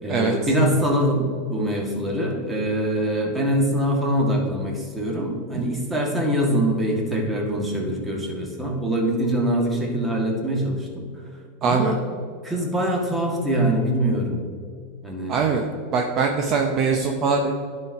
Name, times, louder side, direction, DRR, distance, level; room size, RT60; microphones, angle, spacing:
voice 1, 0.0-11.0 11.6-12.0 12.4-14.4 15.0-15.4, equal, 10° right, -1 dB, 1.8 m, -23 dB
voice 2, 11.6-11.9 15.3-15.7 15.9-17.5, right 5 dB, 35° right, 2 dB, 0.8 m, -22 dB
10.5 x 4.5 x 4.7 m, 2.2 s
supercardioid pair, 135°, 0 cm